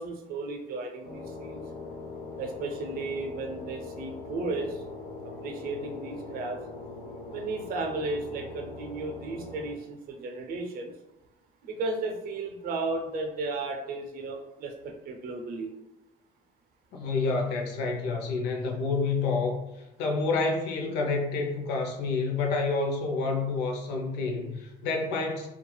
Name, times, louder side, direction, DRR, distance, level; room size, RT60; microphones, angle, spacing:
voice 1, 0.0-1.6 2.4-4.8 5.2-6.6 7.3-10.9 11.6-15.7, right 3 dB, 60° right, 3 dB, 0.5 m, -34 dB
sound 1, 1.0-9.7, left 3 dB, 50° left, 0.7 m, -41 dB
voice 2, 16.9-19.6 20.0-25.5, left 3 dB, 90° left, 2 dB, 0.5 m, -28 dB
3.0 x 2.3 x 2.2 m, 0.98 s
cardioid pair, 110°, 17 cm